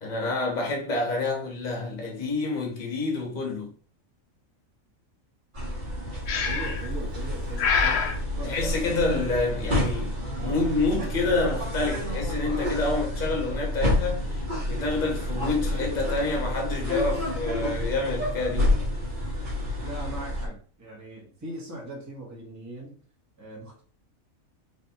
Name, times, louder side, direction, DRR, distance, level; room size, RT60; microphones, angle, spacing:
voice 1, 0.0-3.7 8.4-18.8, left 3 dB, 35° left, 1.2 m, -28 dB
sound 1, 5.5-20.5, left 1 dB, 35° right, 1.4 m, -29 dB
Breathing, 6.3-6.9 7.6-8.2, left 6 dB, 60° left, 0.8 m, -25 dB
voice 2, 6.4-8.1 8.4-8.5 19.8-22.9 23.4-23.8, right 1 dB, 15° right, 1.3 m, -40 dB
4.0 x 3.2 x 2.9 m
omnidirectional pair, 1.4 m